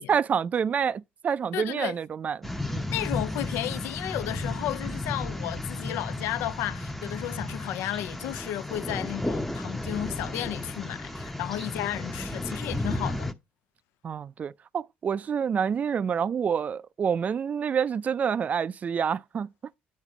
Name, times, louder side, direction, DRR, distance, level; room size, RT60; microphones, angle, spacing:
voice 1, 0.1-3.0 14.0-19.5, right 7 dB, 40° right, 0.3 m, -28 dB
voice 2, 1.5-2.0 2.9-13.3, left 14 dB, 80° left, 0.3 m, -33 dB
sound 1, 2.4-13.3, left 1 dB, 5° left, 0.6 m, -33 dB
8.4 x 4.1 x 4.9 m
cardioid pair, 90°, 4 cm